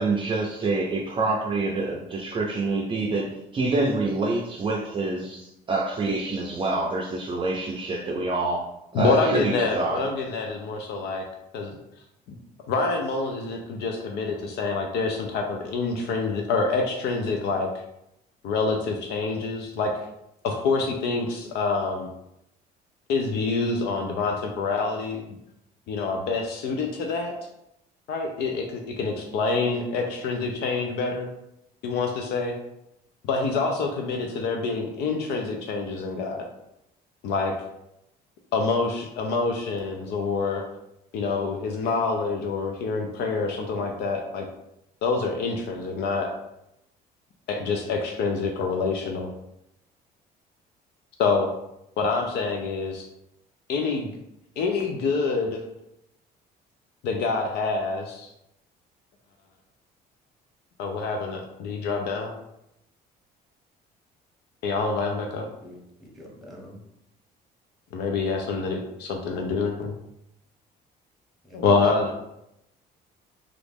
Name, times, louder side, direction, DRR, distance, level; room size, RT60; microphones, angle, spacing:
voice 1, 0.0-8.7 8.9-10.0, right 2 dB, 30° right, 0 dB, 0.5 m, -26 dB
voice 2, 8.9-11.2 11.5-11.8 12.7-17.7 18.4-19.9 20.4-22.1 23.1-25.2 25.9-27.4 28.1-31.3 31.8-32.5 33.3-36.4 37.2-37.5 38.5-40.6 41.1-44.5 45.0-46.3 47.5-49.3 51.2-51.5 52.0-53.1 53.7-54.1 54.6-55.6 57.0-58.3 60.8-62.3 64.6-65.5 67.9-69.9 71.5-72.1, left 4 dB, 75° left, 2 dB, 0.5 m, -26 dB
voice 3, 65.6-66.8 71.5-71.9, equal, ahead, -2 dB, 0.9 m, -42 dB
3.0 x 2.4 x 3.4 m, 0.82 s
cardioid pair, 110°, 17 cm